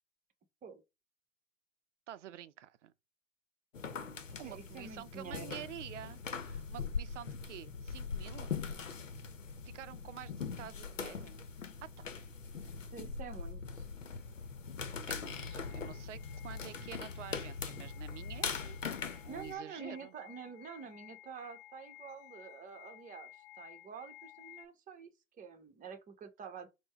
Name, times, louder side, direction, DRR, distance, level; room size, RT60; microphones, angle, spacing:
voice 1, 2.1-2.9 4.4-8.6 9.7-11.4 12.0-12.1 15.1-20.1, right 11 dB, 70° right, 0.6 m, -49 dB
sound 1, 3.7-19.5, left 5 dB, 85° left, 0.8 m, -41 dB
voice 2, 4.4-5.7 12.6-13.8 19.3-25.1 25.4-26.7, right 6 dB, 20° right, 0.9 m, -48 dB
sound 2, 15.3-24.7, left 16 dB, 55° left, 0.9 m, -56 dB
4.4 x 2.2 x 4.3 m
figure-of-eight pair, 95°, 37 cm